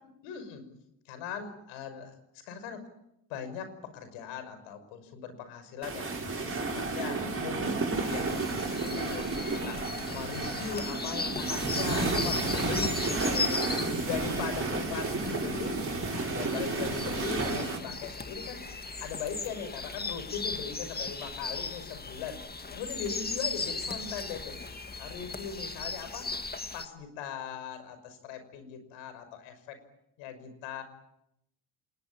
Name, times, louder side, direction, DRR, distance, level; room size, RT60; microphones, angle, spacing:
voice 1, 0.2-0.6 1.1-2.2 2.4-2.8 3.3-6.1 6.5-15.8 16.1-18.6 19.0-22.4 22.7-24.6 25.0-26.3 26.7-29.8 30.2-30.8, left 7 dB, 85° left, 10 dB, 5.9 m, -39 dB
sound 1, 5.8-17.8, right 3 dB, 30° right, 7.7 m, -32 dB
sound 2, 8.0-26.9, left 4 dB, 20° left, 2.2 m, -37 dB
27.5 x 20.0 x 8.8 m, 0.80 s
supercardioid pair, 80°, 45 cm